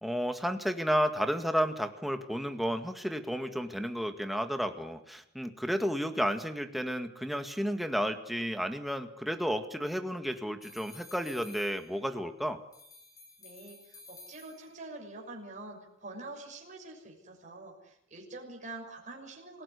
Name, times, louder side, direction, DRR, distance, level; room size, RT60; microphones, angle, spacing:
voice 1, 0.0-12.6, equal, ahead, 6 dB, 2.0 m, -32 dB
sound 1, 10.6-12.3 12.7-14.9, left 3 dB, 20° left, 3.9 m, -53 dB
voice 2, 13.4-19.6, right 2 dB, 40° right, -1 dB, 6.3 m, -46 dB
26.5 x 18.0 x 9.8 m, 0.78 s
head